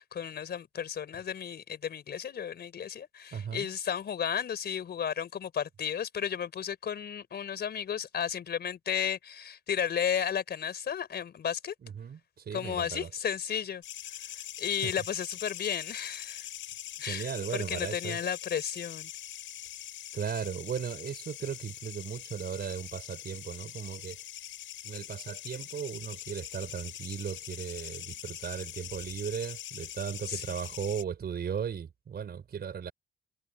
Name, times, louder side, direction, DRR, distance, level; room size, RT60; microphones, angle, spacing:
voice 1, 0.0-11.7 12.5-13.8 14.6-16.5 17.0-19.1 30.3-30.4, left 8 dB, 55° left, 4.1 m, -33 dB
voice 2, 3.3-3.7 11.8-13.1 14.8-14.9 17.1-18.2 20.1-24.2 24.8-32.9, right 7 dB, 50° right, 4.9 m, -36 dB
sound 1, 13.8-31.0, left 11 dB, 75° left, 5.5 m, -43 dB
cardioid pair, 90°, 20 cm